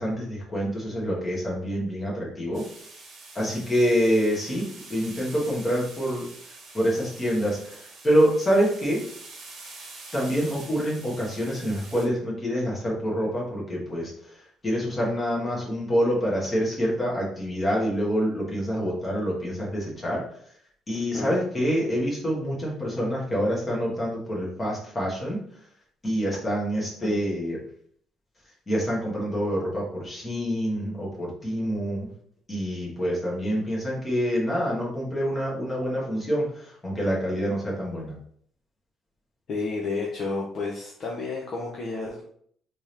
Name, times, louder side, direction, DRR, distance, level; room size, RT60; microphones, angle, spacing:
voice 1, 0.0-2.6 3.3-6.3 6.7-9.0 10.1-20.2 20.9-25.4 26.0-27.6 28.7-32.1 32.5-38.1, equal, 20° left, -4 dB, 1.4 m, -26 dB
sound 1, 2.5-12.1, right 3 dB, 45° right, 1.0 m, -45 dB
voice 2, 39.5-42.2, left 3 dB, 40° left, -2 dB, 0.6 m, -31 dB
3.5 x 2.9 x 3.3 m, 0.62 s
cardioid pair, 160°, 0 cm